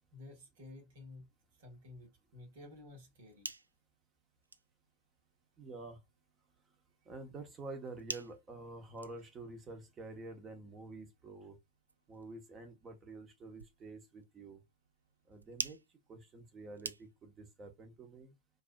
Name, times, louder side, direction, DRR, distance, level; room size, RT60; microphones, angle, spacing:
voice 1, 0.1-1.3 1.6-3.5, left 2 dB, 55° right, 2.0 m, -53 dB
sound 1, 3.0-17.5, right 3 dB, 80° right, 0.3 m, -50 dB
voice 2, 5.6-6.0 7.1-11.5 12.1-14.6 15.3-15.8 16.1-18.3, right 3 dB, 20° right, 1.3 m, -48 dB
4.5 x 2.9 x 2.3 m
figure-of-eight pair, 90°, 0 cm